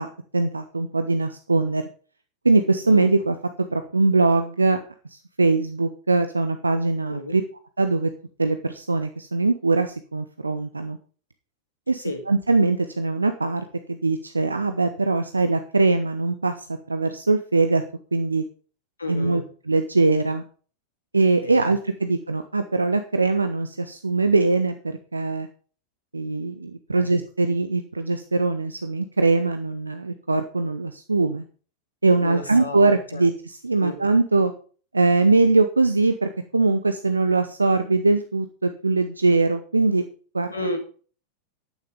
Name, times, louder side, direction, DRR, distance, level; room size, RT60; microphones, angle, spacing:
voice 1, 0.0-1.8 2.4-3.4 3.7-4.8 5.1-7.4 7.8-8.1 8.4-11.0 11.9-17.8 18.1-18.4 19.1-20.4 21.1-25.5 26.1-31.4 32.0-34.5 34.9-40.0 40.3-40.5, right 3 dB, 80° right, 9 dB, 0.8 m, -22 dB
voice 2, 19.0-19.4 21.4-21.7 26.9-27.1 32.2-32.8 33.1-33.2 33.8-34.0 40.5-40.8, left 2 dB, 80° left, 6 dB, 2.1 m, -31 dB
9.9 x 9.4 x 5.2 m, 0.42 s
figure-of-eight pair, 90°, 0 cm